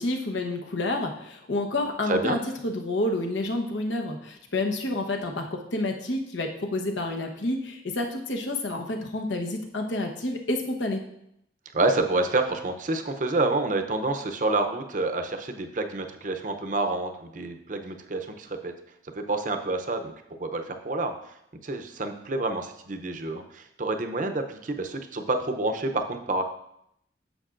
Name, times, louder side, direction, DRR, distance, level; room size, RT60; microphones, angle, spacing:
voice 1, 0.0-11.0, left 2 dB, 85° left, 2 dB, 1.0 m, -29 dB
voice 2, 2.0-2.4 11.7-18.7 19.1-21.1 21.6-26.4, right 2 dB, 45° right, 6 dB, 0.7 m, -28 dB
9.9 x 6.9 x 2.5 m, 0.77 s
head